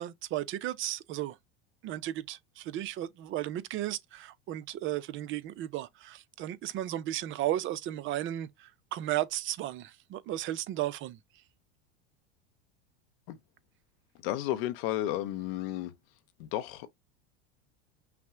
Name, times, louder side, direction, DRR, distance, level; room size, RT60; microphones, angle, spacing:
voice 1, 0.0-1.4 1.8-11.2, right 13 dB, 40° right, 0.6 m, -34 dB
voice 2, 14.2-15.9 16.4-16.9, left 13 dB, 65° left, 0.8 m, -32 dB
5.8 x 2.1 x 3.6 m
supercardioid pair, 115°, 30 cm